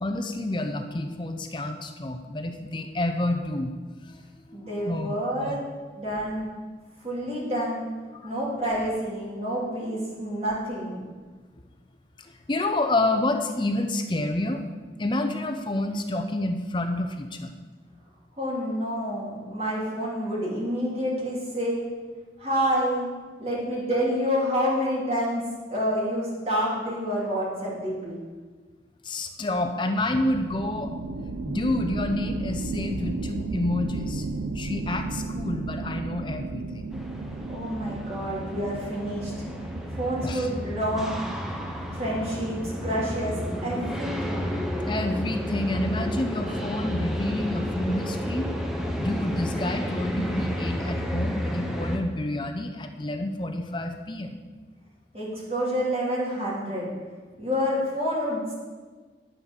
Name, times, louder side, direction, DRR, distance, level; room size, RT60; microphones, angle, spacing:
voice 1, 0.0-3.7 4.0-5.6 8.1-8.3 12.2-14.7 15.0-17.7 29.0-30.9 31.5-34.2 34.5-36.9 40.2-40.5 44.9-48.5 49.0-54.4, left 1 dB, 25° left, 6 dB, 0.6 m, -29 dB
voice 2, 4.5-5.6 6.0-6.5 7.0-7.8 8.2-11.1 18.4-21.8 22.4-23.1 23.4-25.4 25.7-28.2 37.5-39.3 39.9-41.2 41.9-43.3 43.6-44.6 55.1-56.9 57.4-58.5, equal, 35° right, -5 dB, 2.7 m, -28 dB
sound 1, 30.3-42.5, right 3 dB, 90° right, 0.6 m, -34 dB
sound 2, 36.9-52.0, equal, 5° right, 0.8 m, -32 dB
11.0 x 5.0 x 6.3 m, 1.4 s
head